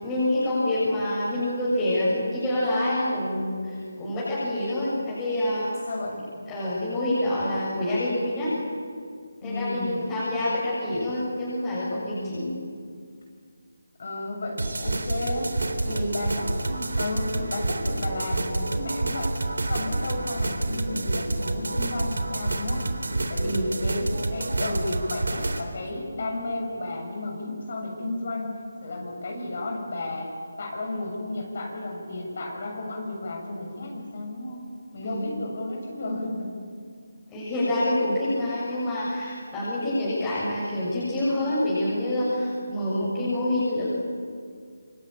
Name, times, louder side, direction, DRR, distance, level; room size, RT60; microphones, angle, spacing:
voice 1, 0.0-5.7 6.5-8.5 9.4-12.5 15.9-16.2 23.4-23.7 35.0-35.2 37.3-43.9, left 1 dB, 10° left, -9 dB, 7.0 m, -27 dB
voice 2, 3.8-4.2 5.9-6.2 9.4-10.1 12.1-12.5 14.0-15.6 15.9-19.3 19.7-22.9 23.3-28.6 28.8-34.7 34.9-36.5, left 2 dB, 50° left, 0 dB, 7.4 m, -33 dB
sound 1, 14.6-25.6, right 2 dB, 85° right, 3.5 m, -28 dB
27.0 x 24.0 x 9.0 m, 2.1 s
figure-of-eight pair, 165°, 0 cm